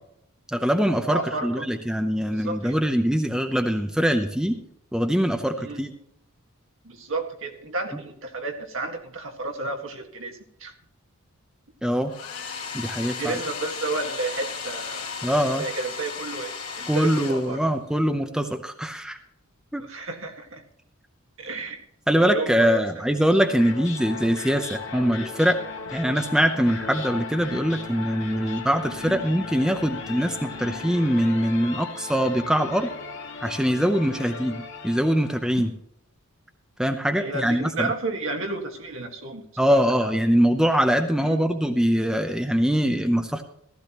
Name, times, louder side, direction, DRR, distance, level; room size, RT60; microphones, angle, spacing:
voice 1, 0.5-4.6 4.9-5.9 11.8-12.1 12.7-13.4 15.2-15.6 16.9-19.2 19.7-19.8 22.1-25.6 25.9-32.9 33.4-35.7 36.8-37.9 39.6-43.4, equal, 5° right, 5 dB, 0.6 m, -23 dB
voice 2, 1.1-1.7 2.3-2.8 5.6-5.8 6.8-10.7 13.2-15.1 15.6-17.6 19.8-20.6 21.4-21.9 22.2-23.0 27.5-27.7 29.0-29.2 34.1-34.3 35.6-35.7 37.2-40.1 41.2-41.4, right 3 dB, 60° right, 3 dB, 1.8 m, -32 dB
Domestic sounds home sounds, 12.1-17.9, left 6 dB, 75° left, 2.6 m, -35 dB
sound 1, 23.3-35.6, left 4 dB, 55° left, 2.0 m, -37 dB
15.0 x 13.5 x 3.0 m, 0.74 s
head